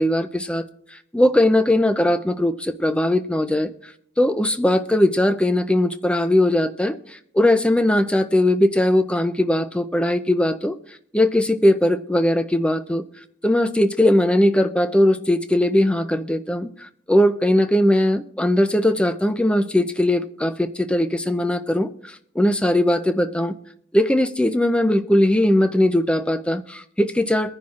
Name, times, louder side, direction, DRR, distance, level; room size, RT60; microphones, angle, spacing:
voice 1, 0.0-10.7 11.1-13.1 13.4-23.5 23.9-27.5, left 1 dB, 5° left, 10 dB, 0.4 m, -19 dB
22.5 x 10.5 x 2.4 m, 0.66 s
head